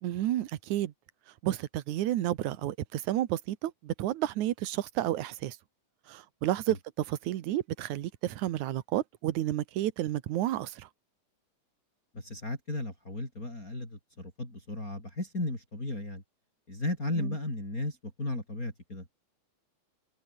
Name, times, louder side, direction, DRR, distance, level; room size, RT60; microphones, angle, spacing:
voice 1, 0.0-0.9 1.4-5.6 6.1-10.9 17.2-17.3, right 13 dB, 70° right, 2.5 m, -31 dB
voice 2, 12.1-16.2 16.7-19.1, left 2 dB, 25° left, 7.0 m, -35 dB
omnidirectional pair, 3.8 m